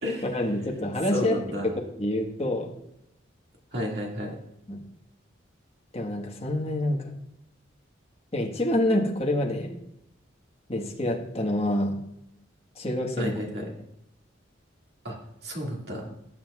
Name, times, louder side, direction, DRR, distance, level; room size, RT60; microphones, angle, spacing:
voice 1, 0.2-2.7 4.7-4.8 5.9-7.1 8.3-9.7 10.7-12.0 12.7-13.3, left 1 dB, 30° left, -1 dB, 1.4 m, -27 dB
voice 2, 1.1-1.7 3.7-4.3 13.2-13.7 15.0-15.2 15.4-16.1, left 1 dB, 55° right, -1 dB, 2.1 m, -31 dB
18.5 x 7.7 x 2.4 m, 0.82 s
head